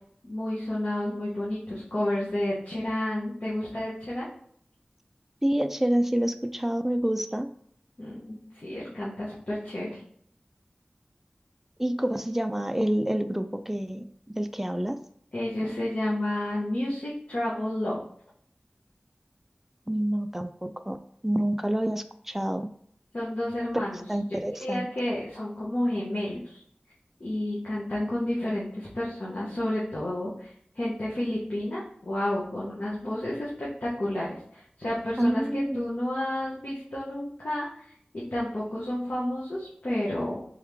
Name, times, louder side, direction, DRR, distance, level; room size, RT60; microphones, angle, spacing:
voice 1, 0.2-4.3 8.0-10.0 15.3-18.0 23.1-24.0 24.6-26.6 27.2-37.8 38.1-40.5, left 1 dB, 65° left, -8 dB, 1.1 m, -31 dB
voice 2, 5.4-7.5 11.8-15.0 19.9-21.0 21.2-22.7 24.1-24.9 35.2-35.8, right 1 dB, 10° right, 8 dB, 0.4 m, -27 dB
3.6 x 3.2 x 3.5 m, 0.64 s
wide cardioid pair, 50°, 3 cm